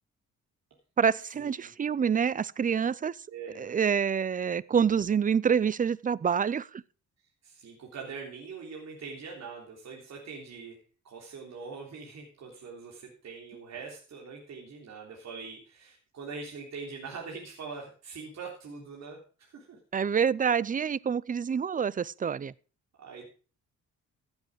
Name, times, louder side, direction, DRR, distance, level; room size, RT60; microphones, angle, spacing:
voice 1, 1.0-3.2 3.6-6.8 19.9-22.5, right 7 dB, 25° right, 0.5 m, -27 dB
voice 2, 3.3-3.8 7.4-10.8 11.0-19.8 23.0-23.3, right 5 dB, 60° right, 3.5 m, -43 dB
15.0 x 8.1 x 4.9 m
cardioid pair, 90°, 30 cm